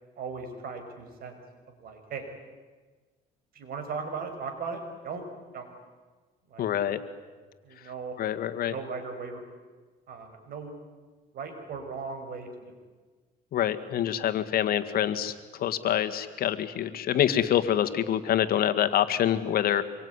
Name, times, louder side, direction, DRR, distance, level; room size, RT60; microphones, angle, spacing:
voice 1, 0.2-1.4 1.8-2.3 3.5-5.2 5.5-5.7 6.5-6.7 7.6-8.2 8.7-9.4 10.1-10.7 11.3-12.8, right 5 dB, 60° right, 6 dB, 6.0 m, -37 dB
voice 2, 6.6-7.0 8.2-8.7 13.5-19.8, left 10 dB, 65° left, 10 dB, 1.9 m, -26 dB
26.5 x 23.0 x 9.8 m, 1.4 s
cardioid pair, 110°, 17 cm